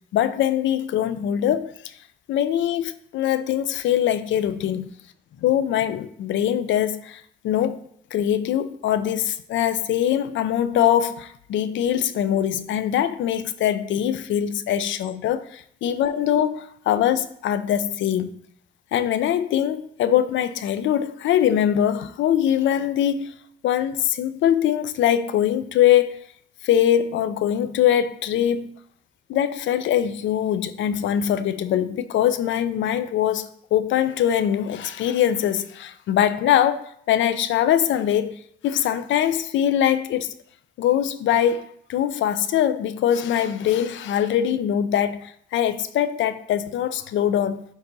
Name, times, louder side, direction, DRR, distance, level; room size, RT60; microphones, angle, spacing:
voice 1, 0.1-1.9 2.3-4.9 5.4-7.8 8.1-18.4 18.9-23.3 23.6-26.2 26.6-28.7 29.3-38.4 38.6-40.3 40.8-41.6 41.9-47.6, left 10 dB, 75° left, 0.5 m, -22 dB
10.5 x 3.9 x 2.7 m
cardioid pair, 90°, 20 cm